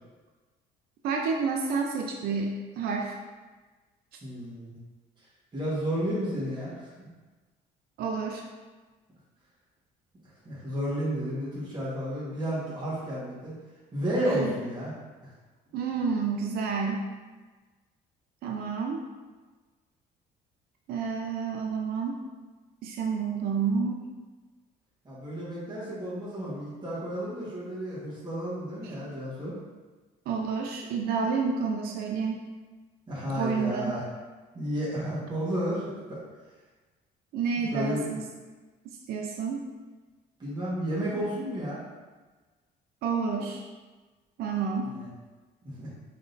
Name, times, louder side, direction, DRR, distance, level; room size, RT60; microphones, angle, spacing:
voice 1, 1.0-3.2 8.0-8.4 14.2-14.5 15.7-17.1 18.4-19.0 20.9-22.2 22.8-24.0 28.8-28.9 30.3-32.5 33.3-34.0 37.3-38.2 39.1-39.7 43.0-43.6 44.4-44.9, right 5 dB, 65° right, 1 dB, 0.5 m, -29 dB
voice 2, 4.2-4.8 5.5-7.1 10.4-13.6 13.9-14.9 25.0-29.6 33.1-34.0 34.5-36.2 37.6-38.0 40.4-41.8 44.8-45.1 45.6-45.9, equal, 25° right, -8 dB, 1.4 m, -32 dB
3.7 x 3.7 x 2.6 m, 1.3 s
cardioid pair, 110°, 17 cm